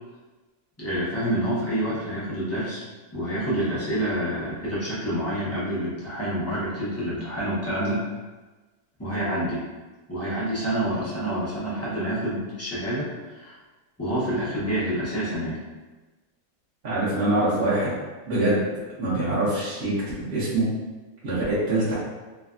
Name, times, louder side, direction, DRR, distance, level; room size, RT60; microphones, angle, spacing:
voice 1, 0.8-2.8 3.1-8.0 9.0-9.6 10.1-13.6 14.0-15.6, right 1 dB, 25° left, -9 dB, 0.3 m, -27 dB
voice 2, 16.8-17.9 18.3-18.6 19.0-19.9 20.2-20.7 21.2-21.9, right 2 dB, 50° right, -11 dB, 0.9 m, -24 dB
3.2 x 2.3 x 2.4 m, 1.2 s
omnidirectional pair, 1.7 m